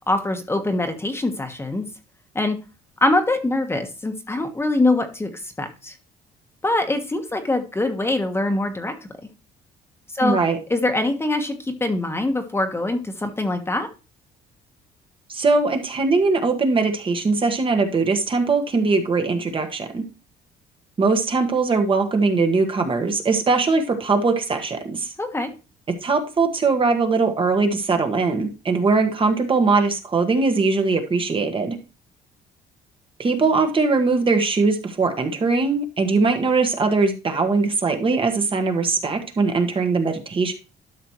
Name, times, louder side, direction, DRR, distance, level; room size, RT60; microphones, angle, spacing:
voice 1, 0.1-1.9 2.3-2.6 3.0-5.9 6.6-8.9 10.1-10.4 10.7-13.9 25.2-25.5, left 2 dB, 15° left, 6 dB, 1.3 m, -23 dB
voice 2, 10.2-10.6 15.3-20.0 21.0-25.1 26.0-31.8 33.2-40.5, right 4 dB, 30° right, 5 dB, 1.5 m, -21 dB
12.0 x 6.1 x 3.1 m, 0.32 s
cardioid pair, 110°, 17 cm